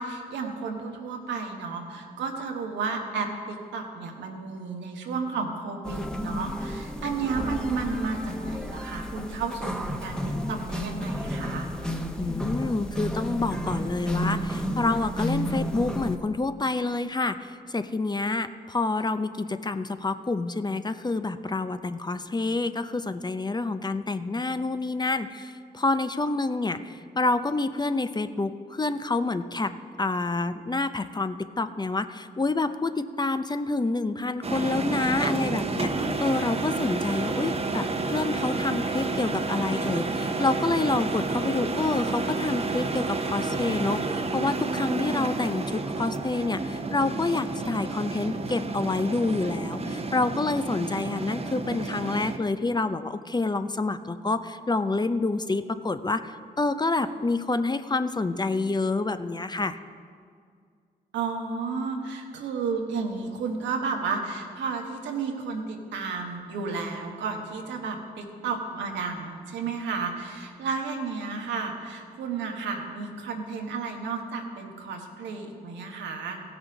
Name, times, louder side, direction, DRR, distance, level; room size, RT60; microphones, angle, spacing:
voice 1, 0.0-11.7 61.1-76.4, right 4 dB, 85° right, 2 dB, 1.2 m, -32 dB
sound 1, 5.8-16.2, equal, 5° left, 1.1 m, -31 dB
voice 2, 12.2-29.7 30.0-59.8, left 3 dB, 25° left, 11 dB, 0.6 m, -28 dB
sound 2, 34.4-52.4, right 3 dB, 35° right, 0.9 m, -30 dB
16.0 x 6.3 x 5.1 m, 2.2 s
supercardioid pair, 45°, 18 cm